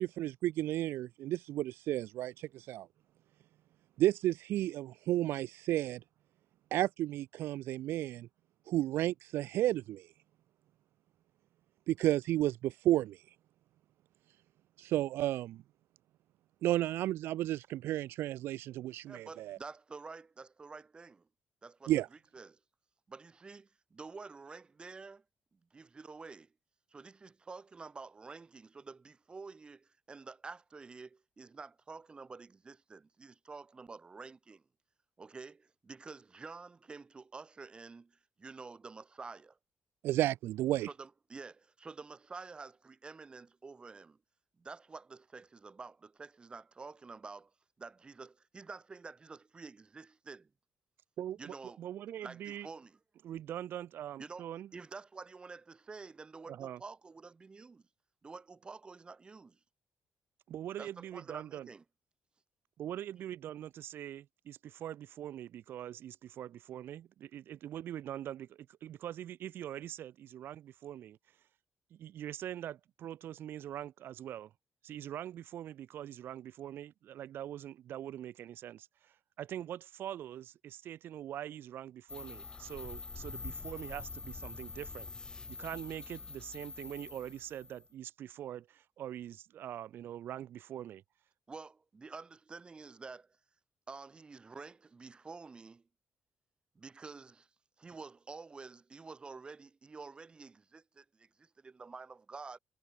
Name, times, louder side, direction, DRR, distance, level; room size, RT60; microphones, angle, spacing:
voice 1, 0.0-2.9 4.0-6.0 6.7-8.3 8.7-10.1 11.9-13.2 14.8-15.6 16.6-19.6 21.9-22.1 40.0-40.9, right 14 dB, 85° right, 0.3 m, -32 dB
voice 2, 19.1-21.3 21.6-22.6 23.1-25.2 25.5-26.5 26.9-34.6 35.2-39.6 40.8-44.2 44.6-47.5 47.8-50.5 51.4-51.8 52.2-53.0 54.2-54.5 54.7-57.8 58.2-59.6 60.8-61.8 91.5-93.3 93.9-95.8 96.7-97.5 97.8-102.6, right 4 dB, 25° right, 4.6 m, -49 dB
voice 3, 51.2-52.7 53.2-54.7 56.5-56.8 60.5-61.7 62.8-71.2 71.9-74.5 74.8-85.1 85.5-91.0, right 11 dB, 70° right, 3.8 m, -43 dB
sound 1, 82.1-87.9, left 4 dB, 20° left, 1.4 m, -45 dB
cardioid pair, 140°, 4 cm